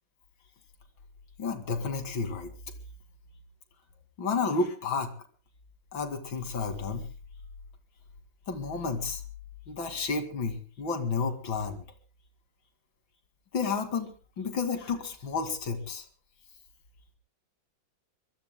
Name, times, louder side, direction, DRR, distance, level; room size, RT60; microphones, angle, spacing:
voice 1, 1.4-2.5 4.2-5.1 5.9-7.0 8.5-9.2 9.7-11.8 13.5-14.1 14.4-16.1, left 4 dB, 75° left, 7 dB, 3.0 m, -31 dB
25.0 x 22.0 x 2.2 m, 0.38 s
omnidirectional pair, 2.1 m